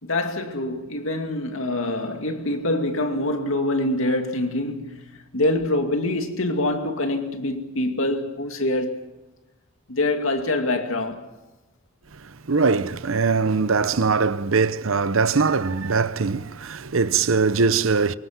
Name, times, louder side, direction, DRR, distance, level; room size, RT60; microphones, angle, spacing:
voice 1, 0.0-5.0 5.3-9.0 9.9-11.3, left 1 dB, 70° left, 2.4 m, -25 dB
voice 2, 12.5-18.1, right 4 dB, 70° right, 0.8 m, -21 dB
24.5 x 22.5 x 6.0 m
head